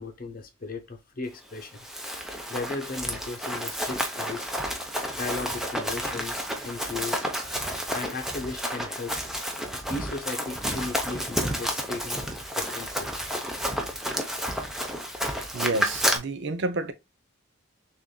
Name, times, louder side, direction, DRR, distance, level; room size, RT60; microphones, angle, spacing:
voice 1, 0.0-1.9 2.5-4.5 5.1-7.3 7.9-9.2 9.7-13.1, left 3 dB, 40° left, 0.8 m, -36 dB
Run, 1.6-16.2, equal, ahead, 0.6 m, -31 dB
voice 2, 15.5-16.9, right 2 dB, 55° right, 0.6 m, -29 dB
6.5 x 2.6 x 2.2 m
head